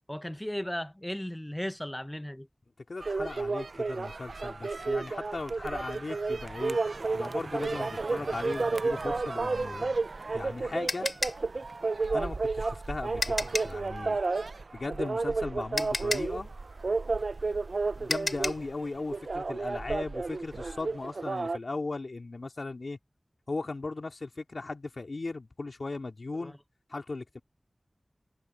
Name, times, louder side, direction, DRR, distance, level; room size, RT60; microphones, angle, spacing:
voice 1, 0.1-2.5 26.3-26.6, left 1 dB, 15° left, 0.6 m, -36 dB
voice 2, 2.9-6.8 7.1-9.9 10.3-11.1 12.1-14.2 14.7-16.5 17.9-23.0 23.5-26.6 26.9-27.4, left 3 dB, 80° left, 3.2 m, -37 dB
sound 1, 3.0-21.6, right 3 dB, 90° right, 0.4 m, -32 dB
sound 2, 10.0-13.8 15.2-15.3 15.8-18.7, left 2 dB, 55° left, 3.5 m, -34 dB
wide cardioid pair, 55°, 0 cm